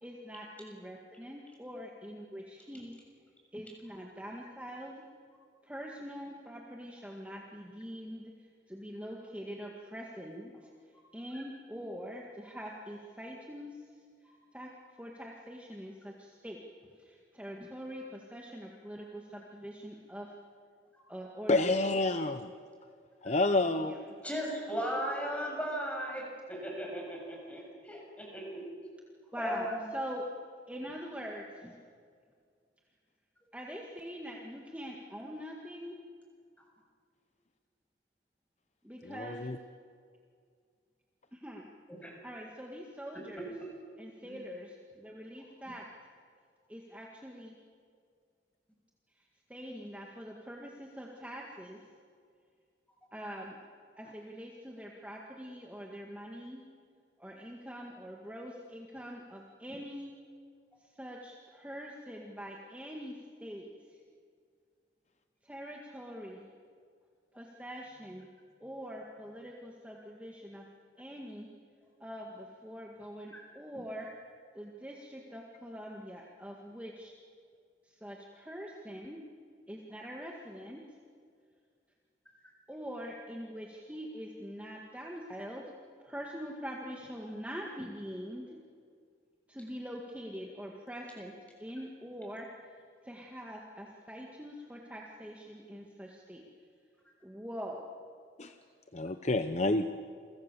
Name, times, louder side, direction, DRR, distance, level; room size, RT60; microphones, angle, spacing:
voice 1, 0.0-3.0 3.5-5.0 5.6-8.3 8.7-10.7 11.1-13.9 14.5-14.7 15.0-16.6 17.0-20.3 21.1-22.0 23.7-24.0 29.3-30.2 30.7-31.8 33.5-36.0 38.8-39.5 41.3-41.7 42.2-43.5 44.0-45.8 46.7-47.5 49.2-51.8 53.1-53.6 54.0-56.6 57.2-60.1 60.8-64.0 65.4-66.5 67.4-68.3 68.6-70.6 71.0-71.5 72.0-74.1 74.6-77.1 77.8-79.2 79.7-80.8 82.7-85.7 86.0-88.6 89.5-91.3 91.6-92.5 93.0-96.4 97.2-97.9, equal, 10° right, -1 dB, 1.9 m, -44 dB
voice 2, 21.5-22.5 23.2-23.9 39.1-39.6 98.4-98.5 98.9-99.9, left 2 dB, 40° left, 9 dB, 0.8 m, -28 dB
voice 3, 24.2-28.7 29.4-29.9 42.0-42.1 43.4-43.5 44.2-44.3 73.3-73.4, equal, 10° left, -1 dB, 6.8 m, -36 dB
29.0 x 23.5 x 7.0 m, 2.1 s
head